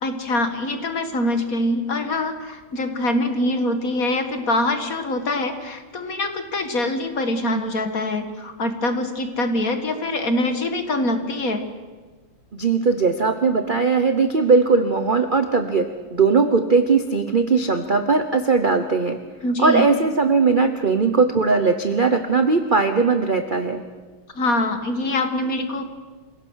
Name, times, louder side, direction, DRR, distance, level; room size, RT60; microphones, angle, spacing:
voice 1, 0.0-11.6 19.4-19.8 24.3-25.8, left 1 dB, 45° left, 7 dB, 2.0 m, -24 dB
voice 2, 12.5-15.9 16.1-19.2 19.6-23.8, right 4 dB, 40° right, 7 dB, 0.7 m, -19 dB
27.5 x 17.0 x 6.4 m, 1.4 s
omnidirectional pair, 2.2 m